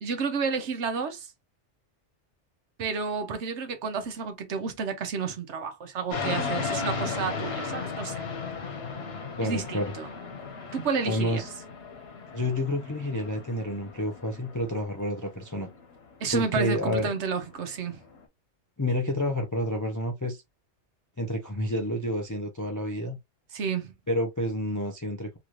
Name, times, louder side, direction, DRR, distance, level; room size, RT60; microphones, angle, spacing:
voice 1, 0.0-1.3 2.8-8.2 9.4-10.1 10.7-11.4 16.2-18.0 23.5-23.9, right 5 dB, 75° right, 1.1 m, -31 dB
sound 1, 6.1-18.2, left 5 dB, 60° left, 1.1 m, -36 dB
voice 2, 9.4-9.9 11.1-11.5 12.3-15.7 16.3-17.1 18.8-20.4 21.2-23.2 24.1-25.4, left 1 dB, 30° left, 0.3 m, -29 dB
3.1 x 2.9 x 2.5 m
omnidirectional pair, 1.2 m